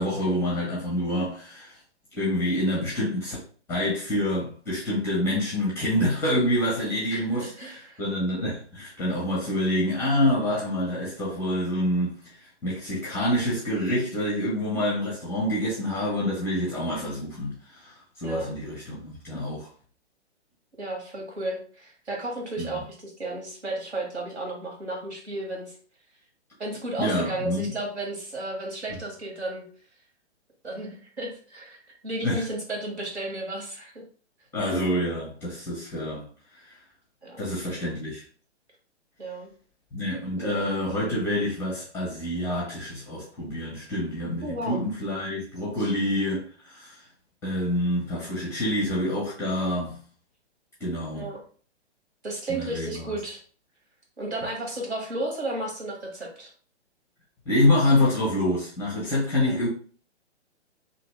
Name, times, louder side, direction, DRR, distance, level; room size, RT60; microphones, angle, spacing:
voice 1, 0.0-1.7 2.1-3.4 3.7-12.1 12.6-19.7 22.6-22.8 27.0-27.7 32.2-32.4 34.5-36.3 36.7-36.8 37.4-38.2 39.9-47.0 47.4-50.0 50.8-51.3 52.5-53.1 57.5-59.7, left 1 dB, 5° left, 0.7 m, -27 dB
voice 2, 7.1-8.0 18.2-18.5 20.8-25.7 26.6-29.6 30.6-31.8 32.0-33.9 37.2-37.5 39.2-39.5 40.4-40.7 44.4-44.8 45.8-45.9 51.1-51.4 52.2-53.4 54.2-56.5 59.4-59.6, right 1 dB, 70° right, 1.6 m, -33 dB
2.9 x 2.7 x 3.1 m
figure-of-eight pair, 125°, 35 cm